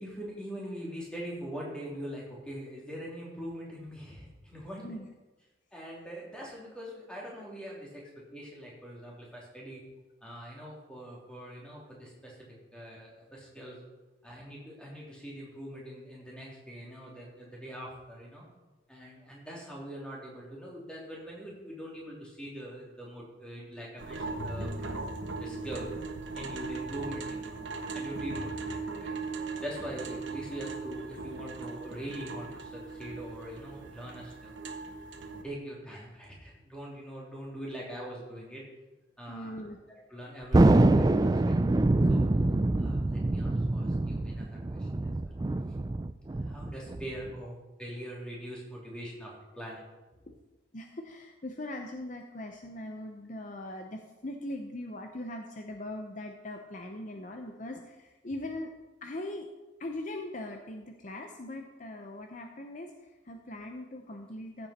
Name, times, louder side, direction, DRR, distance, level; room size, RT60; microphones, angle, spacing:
voice 1, 0.0-5.0 5.7-9.8 10.2-12.3 12.7-13.8 14.2-18.5 18.9-25.1 25.4-25.9 26.3-27.6 27.9-29.2 29.6-34.6 35.4-38.6 39.2-39.6 39.9-41.6 42.1-45.3 45.7-45.8 46.4-49.8 50.1-50.2, equal, 5° left, -4 dB, 3.0 m, -43 dB
sound 1, 24.0-35.4, right 3 dB, 70° right, 1.1 m, -38 dB
voice 2, 39.3-39.8 50.7-58.7 59.0-59.5 59.8-64.7, left 1 dB, 40° left, 3 dB, 0.7 m, -40 dB
Thunder, 40.5-47.4, right 2 dB, 20° right, 0.3 m, -25 dB
14.5 x 7.9 x 4.3 m, 1.1 s
head